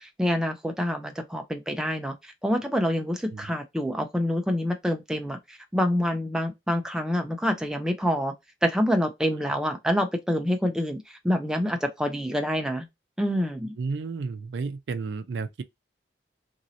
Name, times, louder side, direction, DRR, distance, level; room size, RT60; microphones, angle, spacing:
voice 1, 0.0-8.3 8.6-12.9 13.2-13.7, equal, 5° right, 0.4 m, -27 dB
voice 2, 13.8-15.6, right 4 dB, 70° right, 0.4 m, -32 dB
2.9 x 2.7 x 2.7 m
head